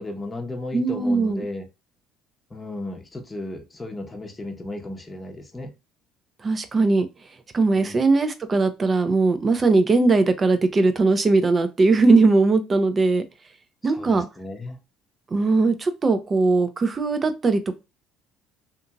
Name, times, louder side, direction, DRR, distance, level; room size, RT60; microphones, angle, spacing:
voice 1, 0.0-1.7 2.5-5.7 7.8-8.0 13.8-14.8, left 2 dB, 20° left, 0.9 m, -35 dB
voice 2, 0.7-1.4 6.4-7.1 7.5-13.2 13.8-14.3 15.3-17.8, right 3 dB, 35° right, 0.6 m, -20 dB
2.7 x 2.6 x 2.3 m
supercardioid pair, 70°, 0 cm